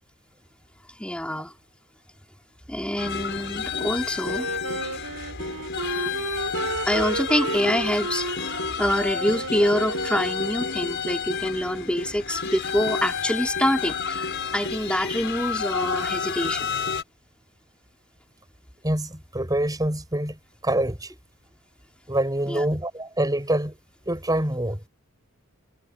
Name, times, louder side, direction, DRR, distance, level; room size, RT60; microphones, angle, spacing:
voice 1, 1.0-1.5 2.7-4.5 6.8-16.8 22.5-22.7, equal, 5° left, 3.8 m, -26 dB
sound 1, 3.0-17.0, left 6 dB, 55° left, 5.3 m, -30 dB
Wind instrument woodwind instrument, 4.2-10.9, right 3 dB, 85° right, 5.7 m, -33 dB
voice 2, 18.8-20.4 20.6-21.1 22.1-23.8 24.1-24.8, right 1 dB, 15° right, 5.8 m, -25 dB
head